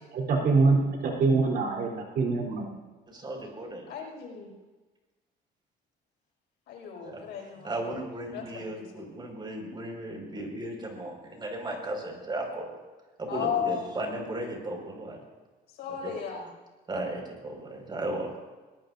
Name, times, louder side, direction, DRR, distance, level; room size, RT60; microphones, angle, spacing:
voice 1, 0.1-2.7, right 3 dB, 65° right, -1 dB, 3.7 m, -24 dB
voice 2, 3.1-3.9 7.0-7.2 7.6-12.7 13.2-15.2 16.0-16.1 16.9-18.3, right 1 dB, 25° right, 1 dB, 5.6 m, -35 dB
voice 3, 3.9-4.5 6.7-7.7 8.3-8.9 13.3-13.9 15.8-16.5, left 7 dB, 80° left, -1 dB, 6.0 m, -34 dB
22.5 x 19.0 x 2.7 m, 1.3 s
cardioid pair, 110°, 17 cm